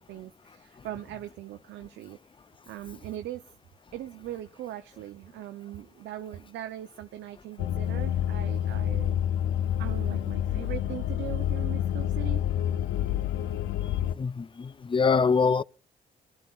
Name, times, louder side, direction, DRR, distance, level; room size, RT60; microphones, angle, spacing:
voice 1, 0.0-2.2 2.7-3.4 3.9-9.3 9.8-12.4, right 13 dB, 75° right, 0.6 m, -40 dB
sound 1, 7.6-14.1, left 11 dB, 80° left, 0.5 m, -28 dB
voice 2, 14.1-15.6, left 5 dB, 25° left, 0.5 m, -24 dB
22.0 x 12.0 x 2.4 m
hypercardioid pair, 50°, 19 cm